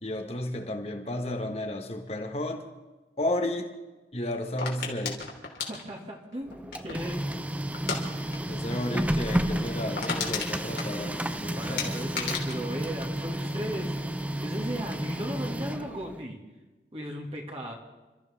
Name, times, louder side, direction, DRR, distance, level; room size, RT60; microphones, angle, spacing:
voice 1, 0.0-2.6 3.2-3.7 4.1-5.2 8.5-11.9, left 1 dB, 35° left, 4 dB, 1.6 m, -32 dB
sound 1, 4.6-7.1 7.7-8.0 8.3-8.6 8.8-8.9 9.3-9.4 9.7-11.4 11.8-13.8 14.1-14.5, left 5 dB, 75° left, 3.3 m, -34 dB
voice 2, 5.7-7.3 11.6-14.0 14.4-16.4 16.9-17.7, equal, 35° right, -1 dB, 2.3 m, -36 dB
Printer, 6.5-16.2, right 1 dB, 10° right, 0.5 m, -32 dB
28.0 x 14.0 x 3.6 m, 1.2 s
head